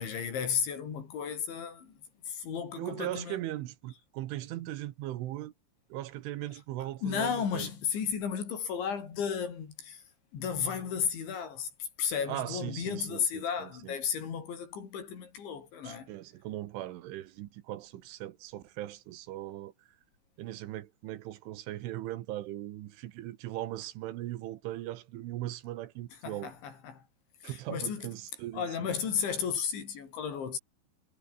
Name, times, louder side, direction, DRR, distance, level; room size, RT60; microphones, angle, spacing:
voice 1, 0.0-2.0 2.3-3.4 7.0-10.0 10.3-16.1 26.2-27.0 27.4-28.1 28.5-30.6, left 7 dB, 65° left, 6.7 m, -34 dB
voice 2, 2.8-5.5 5.9-7.7 12.3-14.0 15.8-19.7 20.4-26.5 27.4-28.9, right 14 dB, 75° right, 3.6 m, -39 dB
omnidirectional pair, 5.8 m